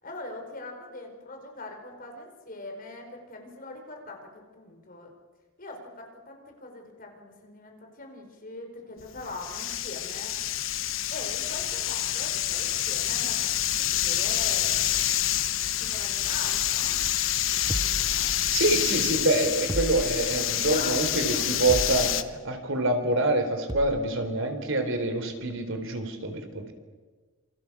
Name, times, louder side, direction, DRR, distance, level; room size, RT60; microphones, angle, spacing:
voice 1, 0.0-5.1 5.6-10.4 11.1-13.4 13.8-14.9 15.8-17.0 17.8-18.3 20.4-22.1, left 2 dB, 40° left, 3 dB, 5.2 m, -42 dB
sound 1, 9.0-22.2, left 12 dB, 65° left, 1.2 m, -27 dB
sound 2, 17.7-18.8 19.7-20.6 21.7-22.4 23.7-24.2, right 1 dB, 20° right, 0.8 m, -35 dB
voice 2, 18.5-26.7, right 2 dB, 60° right, 7 dB, 4.0 m, -26 dB
27.5 x 27.0 x 7.3 m, 1.4 s
head